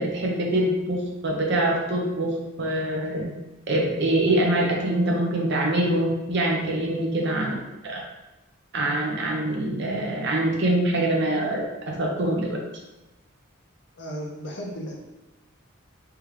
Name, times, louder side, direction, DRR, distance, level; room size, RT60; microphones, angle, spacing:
voice 1, 0.0-3.3 3.7-7.5 7.8-8.0 8.7-11.7 12.0-12.5, right 1 dB, 55° right, -1 dB, 0.8 m, -24 dB
voice 2, 14.0-15.0, equal, 55° left, 1 dB, 0.7 m, -34 dB
3.6 x 3.4 x 3.2 m, 1.0 s
head